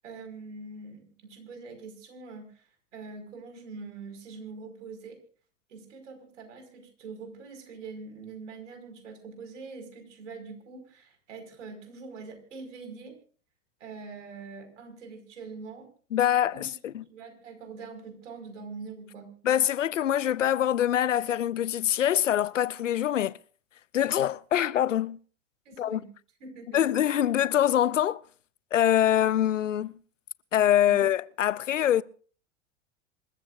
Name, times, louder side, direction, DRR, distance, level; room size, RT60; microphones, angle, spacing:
voice 1, 0.0-5.2 5.7-13.1 13.8-15.9 16.5-16.7 17.1-19.3 25.7-26.1 26.4-26.8 30.9-31.0, right 4 dB, 80° right, 5.5 m, -44 dB
voice 2, 16.1-17.0 19.4-23.4 23.9-25.2 25.8-26.0 26.7-28.2 28.7-30.0 30.5-32.0, left 11 dB, 90° left, 0.6 m, -24 dB
27.0 x 14.5 x 2.6 m
hypercardioid pair, 90°, 36 cm